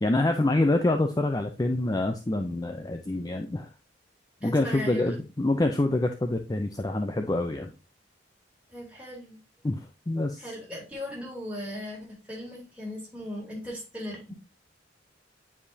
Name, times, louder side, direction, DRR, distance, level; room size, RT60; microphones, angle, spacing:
voice 1, 0.0-3.7 4.4-7.7 9.6-10.4, left 2 dB, 20° left, 5 dB, 0.5 m, -26 dB
voice 2, 4.4-5.1 8.7-9.4 10.4-14.3, left 1 dB, 5° right, -5 dB, 3.1 m, -38 dB
9.2 x 4.9 x 2.7 m, 0.29 s
head